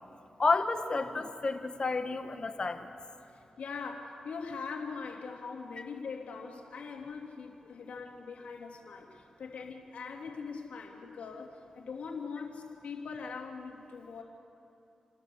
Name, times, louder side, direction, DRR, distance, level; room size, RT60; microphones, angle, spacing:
voice 1, 0.4-2.9, left 3 dB, 45° left, 7 dB, 1.5 m, -30 dB
voice 2, 3.3-14.2, left 5 dB, 80° left, 1 dB, 2.7 m, -42 dB
29.5 x 13.0 x 7.0 m, 2.7 s
cardioid pair, 60°, 2 cm